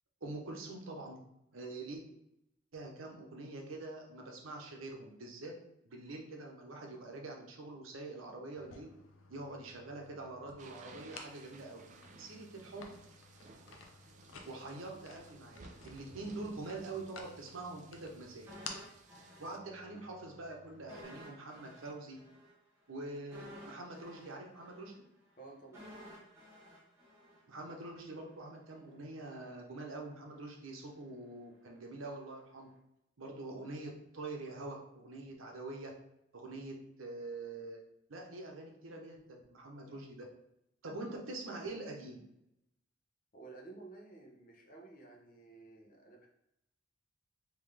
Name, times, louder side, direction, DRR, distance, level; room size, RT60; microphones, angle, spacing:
voice 1, 0.2-1.2 1.5-2.0 2.7-5.5 5.8-8.9 9.3-11.9 12.2-12.9 14.5-18.5 19.4-22.2 22.9-24.9 27.5-32.7 33.2-35.9 36.3-37.8 38.1-40.2 40.8-42.2, right 2 dB, 90° right, 1 dB, 0.8 m, -45 dB
sound 1, 8.6-21.0, left 4 dB, 85° left, 0.5 m, -54 dB
sound 2, 10.6-19.6, right 3 dB, 40° right, 0.4 m, -57 dB
sound 3, 18.5-20.1 20.4-20.5 20.9-28.0 28.3-28.4, equal, 15° right, 1.0 m, -54 dB
voice 2, 25.4-25.9 43.3-46.3, right 3 dB, 45° left, 1 dB, 0.8 m, -53 dB
3.7 x 2.9 x 3.3 m, 0.82 s
head